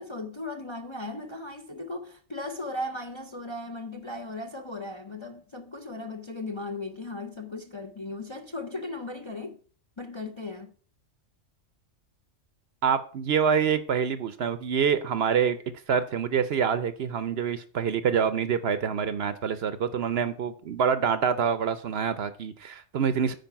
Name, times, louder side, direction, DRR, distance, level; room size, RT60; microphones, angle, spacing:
voice 1, 0.0-9.6 10.0-10.7, left 2 dB, 30° left, 0.5 m, -37 dB
voice 2, 12.8-15.6 15.9-23.3, right 7 dB, 60° right, 0.8 m, -26 dB
9.2 x 4.8 x 5.7 m
omnidirectional pair, 1.3 m